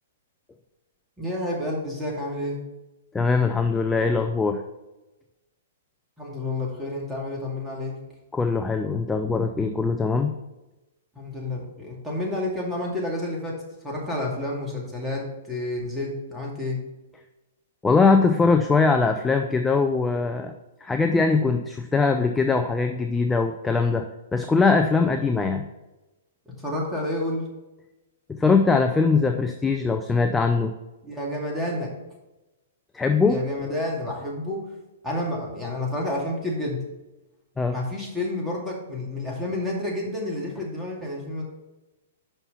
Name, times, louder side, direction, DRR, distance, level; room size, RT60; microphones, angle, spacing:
voice 1, 1.2-2.6 6.2-8.0 11.2-16.8 26.6-27.5 31.0-31.9 33.3-34.7 35.0-36.8 37.7-41.4, left 1 dB, 5° right, -3 dB, 2.3 m, -30 dB
voice 2, 3.1-4.6 8.3-10.3 17.8-20.5 20.8-24.0 24.3-25.6 28.4-30.7 32.9-33.4 37.6-37.7, left 4 dB, 10° left, 5 dB, 0.5 m, -21 dB
5.7 x 5.5 x 5.7 m, 1.0 s
hypercardioid pair, 115°, 0 cm